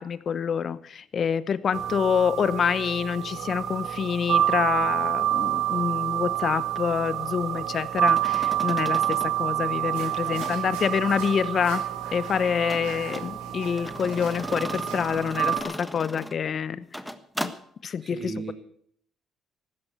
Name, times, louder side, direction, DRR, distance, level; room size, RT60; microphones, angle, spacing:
voice 1, 0.0-11.8 12.1-16.9 17.4-17.5 17.8-18.2, left 7 dB, 50° left, 17 dB, 0.9 m, -27 dB
sound 1, 1.7-15.6, right 12 dB, 65° right, 1.9 m, -28 dB
sound 2, 8.0-9.3 10.3-10.6 12.7-13.3 13.8-16.4 16.8-17.6, equal, ahead, 1.4 m, -36 dB
sound 3, 9.9-15.2, right 4 dB, 85° right, 5.1 m, -43 dB
voice 2, 18.0-18.5, right 4 dB, 25° right, 6 dB, 4.4 m, -36 dB
15.5 x 12.0 x 6.7 m, 0.65 s
supercardioid pair, 65°, 0 cm